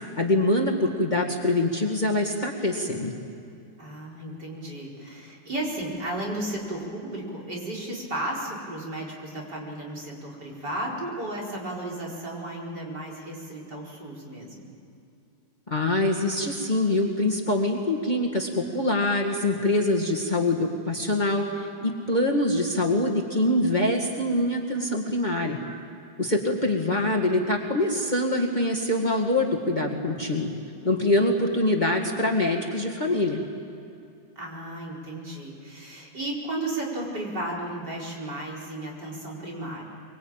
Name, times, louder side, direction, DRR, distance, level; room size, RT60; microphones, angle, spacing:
voice 1, 0.2-3.1 15.7-25.6 26.2-30.5 30.8-33.4, left 1 dB, 25° left, 1 dB, 2.0 m, -24 dB
voice 2, 3.8-14.7 34.4-39.8, right 1 dB, 60° right, -3 dB, 5.4 m, -34 dB
24.0 x 23.5 x 9.0 m, 2.6 s
omnidirectional pair, 2.1 m